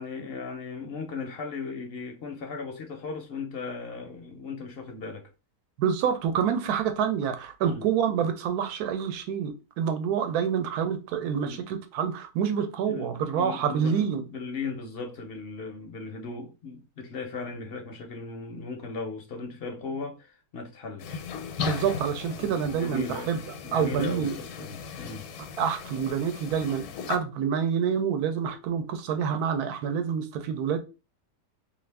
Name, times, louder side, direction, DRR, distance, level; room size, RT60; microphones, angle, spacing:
voice 1, 0.0-5.3 7.6-7.8 11.4-11.6 12.9-21.3 22.3-23.3 23.6-25.3, left 4 dB, 60° left, 0.6 m, -37 dB
voice 2, 5.8-14.2 21.6-23.4 23.7-24.4 25.6-30.8, right 7 dB, 85° right, 1.1 m, -27 dB
sound 1, 21.0-27.2, left 6 dB, 80° left, 1.1 m, -37 dB
2.7 x 2.4 x 3.3 m
omnidirectional pair, 1.6 m